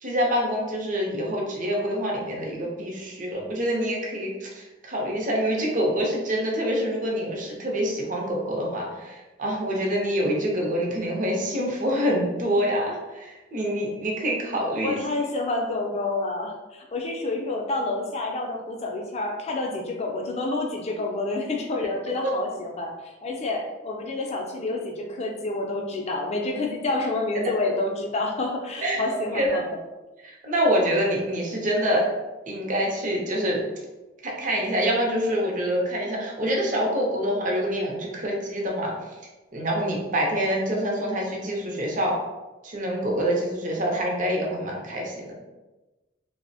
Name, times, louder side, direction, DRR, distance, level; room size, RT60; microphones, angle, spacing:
voice 1, 0.0-15.0 28.8-29.6 30.2-32.1 32.5-33.6 34.2-38.9 39.5-42.2 42.6-45.3, equal, 45° right, -1 dB, 0.6 m, -26 dB
voice 2, 14.8-29.8, left 2 dB, 35° left, 1 dB, 0.4 m, -28 dB
2.8 x 2.0 x 2.7 m, 1.1 s
head